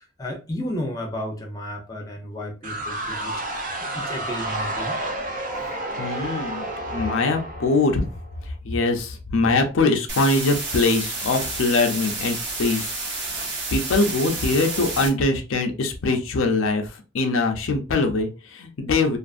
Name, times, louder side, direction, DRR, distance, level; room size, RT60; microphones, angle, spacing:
voice 1, 0.2-3.3 3.9-5.0, left 1 dB, 20° left, 0.6 m, -32 dB
sound 1, 2.6-8.4, right 1 dB, 45° right, 0.5 m, -30 dB
voice 2, 6.0-6.6 6.9-8.0 8.6-12.9 13.2-13.4 13.7-16.8 17.1-19.2, left 3 dB, 80° left, 0.5 m, -22 dB
sound 2, 10.1-15.1, right 3 dB, 60° right, 1.0 m, -30 dB
2.5 x 2.5 x 2.4 m
head